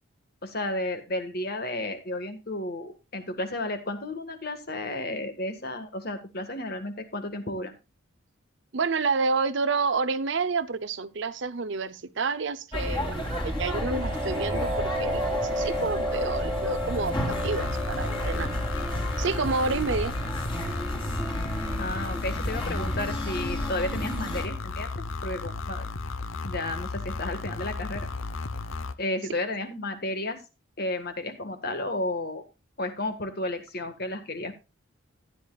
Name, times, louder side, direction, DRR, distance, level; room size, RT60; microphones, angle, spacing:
voice 1, 0.4-7.7 21.8-24.9 25.2-25.9 26.4-28.1 29.0-30.4 30.8-32.4 32.8-34.5, left 1 dB, 50° left, 1.6 m, -32 dB
voice 2, 8.7-18.5 19.2-20.1, right 4 dB, 60° right, 0.7 m, -29 dB
sound 1, 12.7-24.4, equal, 20° left, 3.3 m, -32 dB
sound 2, 13.1-22.6, equal, 15° right, 1.8 m, -34 dB
sound 3, 17.3-28.9, left 3 dB, 75° left, 0.8 m, -34 dB
14.0 x 9.9 x 2.4 m
head